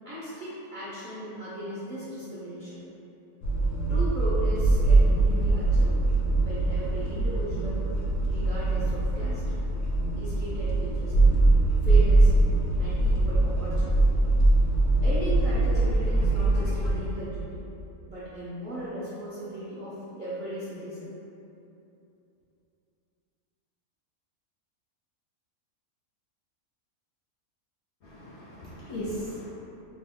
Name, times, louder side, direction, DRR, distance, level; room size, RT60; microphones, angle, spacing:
voice 1, 0.0-2.8 3.9-6.0 6.4-7.8 8.3-9.4 10.2-11.4 11.8-12.3 12.8-14.0 15.0-17.6 18.1-21.1, right 1 dB, 65° right, -11 dB, 0.4 m, -36 dB
sound 1, 3.4-17.0, right 2 dB, 85° left, 1.1 m, -23 dB
voice 2, 28.0-29.5, equal, 65° left, -8 dB, 0.7 m, -37 dB
2.8 x 2.3 x 3.5 m, 2.9 s
omnidirectional pair, 1.6 m